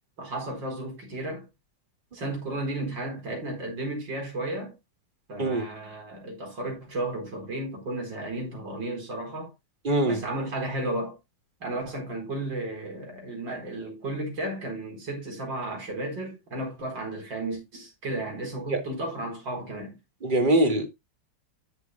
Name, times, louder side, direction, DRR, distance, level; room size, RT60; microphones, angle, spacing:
voice 1, 0.2-1.4 2.1-4.7 5.3-9.5 10.0-11.2 11.6-19.9, right 1 dB, 70° right, 5.1 m, -33 dB
voice 2, 9.9-10.2 18.7-18.8 20.2-20.9, right 1 dB, 25° right, 2.3 m, -22 dB
13.0 x 7.1 x 2.3 m
omnidirectional pair, 2.1 m